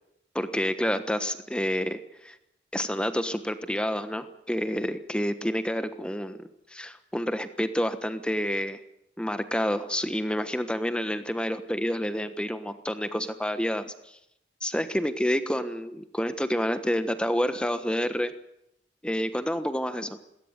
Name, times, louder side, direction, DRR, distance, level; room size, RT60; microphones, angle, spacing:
voice 1, 0.3-2.4 2.7-8.8 9.2-14.2 14.6-18.3 19.0-20.2, equal, 5° left, 10 dB, 1.2 m, -29 dB
20.0 x 18.0 x 9.5 m, 0.79 s
head